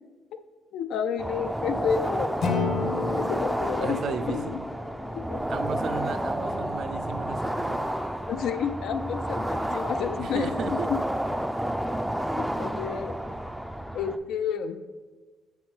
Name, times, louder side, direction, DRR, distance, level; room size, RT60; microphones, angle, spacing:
voice 1, 0.7-4.6 5.1-5.6 8.3-11.0 12.4-13.2 13.9-14.8, left 7 dB, 80° left, 10 dB, 0.4 m, -31 dB
sound 1, 1.2-14.2, equal, 5° right, 0.4 m, -30 dB
Acoustic guitar / Strum, 2.4-5.6, left 4 dB, 65° left, 1.0 m, -32 dB
voice 2, 3.8-4.6 5.5-7.9 10.2-10.9, right 7 dB, 65° right, 11 dB, 0.4 m, -35 dB
7.2 x 4.7 x 4.4 m, 1.3 s
cardioid pair, 90°, 0 cm